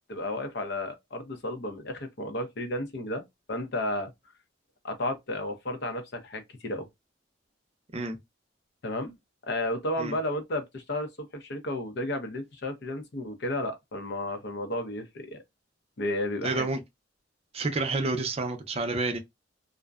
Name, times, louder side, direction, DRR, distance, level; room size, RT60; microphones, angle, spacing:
voice 1, 0.1-3.2 3.5-4.1 4.8-6.9 8.8-9.1 9.4-15.4 16.0-16.7, left 1 dB, 60° left, 0.7 m, -32 dB
voice 2, 16.4-16.8 17.5-19.2, right 3 dB, 30° right, 0.5 m, -29 dB
2.5 x 2.1 x 2.3 m
head